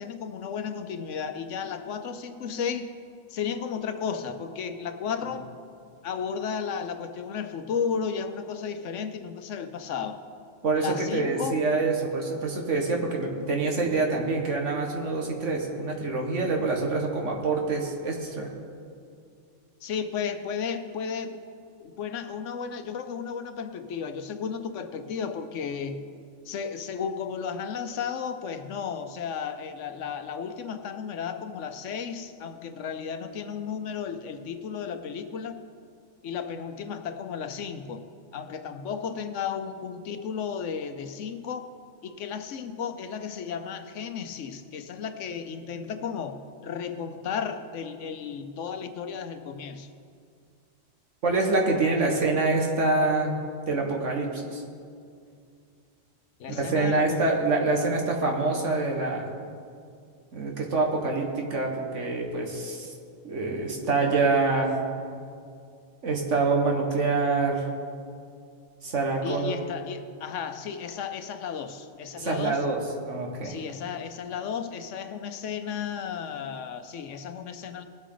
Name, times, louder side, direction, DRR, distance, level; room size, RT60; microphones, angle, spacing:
voice 1, 0.0-2.9 3.3-5.5 6.0-10.2 10.7-11.7 19.8-21.4 21.8-26.0 26.5-35.7 36.2-38.1 38.3-41.7 42.0-49.9 56.4-57.4 69.2-72.6 73.4-77.8, left 6 dB, 80° left, 9 dB, 1.1 m, -34 dB
voice 2, 10.6-18.5 51.2-53.3 53.7-54.6 56.5-59.3 60.3-62.9 63.2-64.8 66.0-67.7 68.8-69.6 72.2-73.6, right 3 dB, 75° right, 1 dB, 1.8 m, -26 dB
20.0 x 8.1 x 3.9 m, 2.3 s
omnidirectional pair, 1.2 m